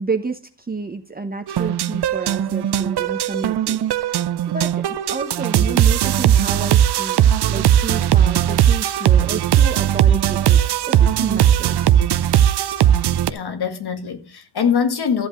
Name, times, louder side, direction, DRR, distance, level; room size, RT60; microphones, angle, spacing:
voice 1, 0.0-4.1 4.5-7.2 7.5-10.6 10.9-11.9, right 4 dB, 20° right, 0.9 m, -30 dB
sound 1, 1.5-13.3, right 10 dB, 70° right, 0.7 m, -18 dB
voice 2, 13.3-15.3, left 7 dB, 65° left, 1.7 m, -23 dB
13.5 x 8.0 x 3.1 m
cardioid pair, 105°, 41 cm